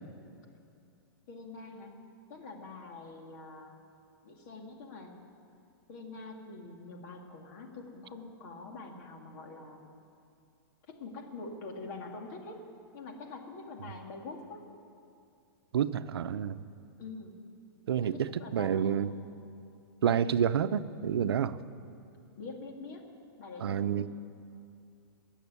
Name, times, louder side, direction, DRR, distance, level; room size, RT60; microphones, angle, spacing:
voice 1, 1.3-2.0 2.3-3.8 4.2-5.2 5.9-9.9 10.9-12.6 12.9-14.6 17.0-17.4 18.0-19.0 22.4-23.0 23.4-24.1, left 3 dB, 45° left, 2 dB, 2.3 m, -45 dB
voice 2, 15.7-16.6 17.9-19.1 20.0-21.6 23.6-24.1, right 8 dB, 85° right, 13 dB, 0.7 m, -29 dB
21.0 x 7.3 x 9.5 m, 2.5 s
hypercardioid pair, 160°, 13 cm